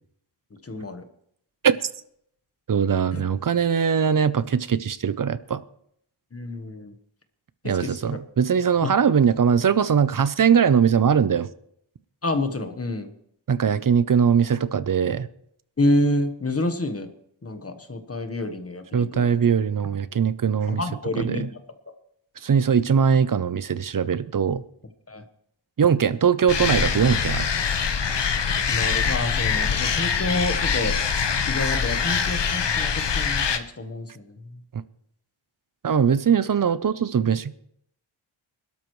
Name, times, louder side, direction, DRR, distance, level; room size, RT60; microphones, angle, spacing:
voice 1, 0.5-1.0 3.1-3.2 6.3-6.9 7.6-8.0 8.8-8.9 12.2-13.1 15.8-17.1 17.4-19.3 20.7-21.6 25.1-25.2 28.7-30.9 31.5-34.6, left 1 dB, 30° left, 1.2 m, -28 dB
voice 2, 2.7-5.6 7.6-11.5 13.5-15.3 18.9-20.8 21.2-21.5 22.4-24.6 25.8-27.5 34.7-34.8 35.8-37.5, right 7 dB, 45° right, 0.6 m, -21 dB
sound 1, 26.5-33.6, left 6 dB, 60° left, 1.0 m, -24 dB
26.0 x 12.5 x 3.2 m
wide cardioid pair, 145°, 48 cm